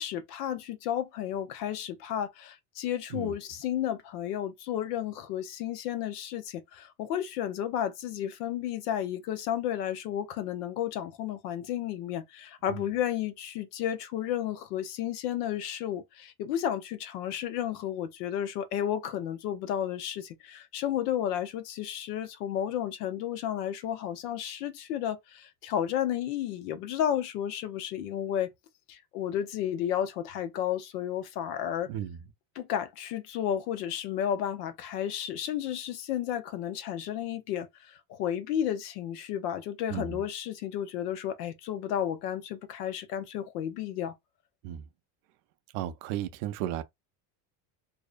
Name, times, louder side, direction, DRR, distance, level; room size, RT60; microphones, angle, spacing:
voice 1, 0.0-28.5 28.9-31.9 32.6-44.1, left 10 dB, 90° left, 0.6 m, -32 dB
voice 2, 31.8-32.3 39.9-40.2 44.6-44.9 45.7-46.8, right 11 dB, 75° right, 0.6 m, -35 dB
2.6 x 2.0 x 2.4 m
supercardioid pair, 105°, 45 cm